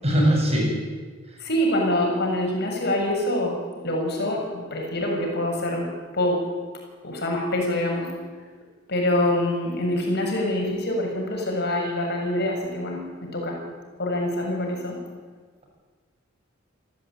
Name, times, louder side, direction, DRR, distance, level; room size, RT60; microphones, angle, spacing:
voice 1, 0.0-0.8, equal, 30° right, 0 dB, 7.3 m, -20 dB
voice 2, 1.4-3.5 3.8-6.4 7.0-8.1 8.9-13.6 14.0-15.0, left 1 dB, 55° left, 0 dB, 7.2 m, -25 dB
29.0 x 14.5 x 9.1 m, 1.5 s
head